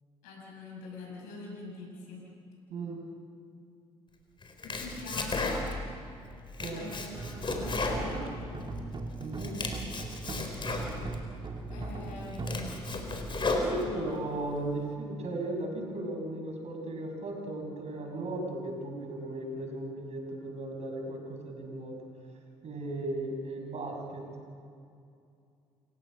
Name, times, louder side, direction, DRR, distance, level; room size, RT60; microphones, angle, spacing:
voice 1, 0.2-2.3 4.6-5.7 6.6-8.3 11.7-12.8 13.4-14.1, left 2 dB, 80° left, -3 dB, 6.2 m, -44 dB
Domestic sounds home sounds, 4.4-5.9 6.3-8.8 9.2-11.2 11.7-11.8 12.2-14.2, left 3 dB, 40° left, 4.1 m, -34 dB
sound 1, 7.1-14.4, right 3 dB, 35° right, 2.3 m, -39 dB
voice 2, 9.2-9.6 13.5-22.0 22.6-24.3, right 2 dB, 55° right, 2 dB, 6.3 m, -36 dB
28.5 x 17.0 x 6.4 m, 2.5 s
hypercardioid pair, 55°, 13 cm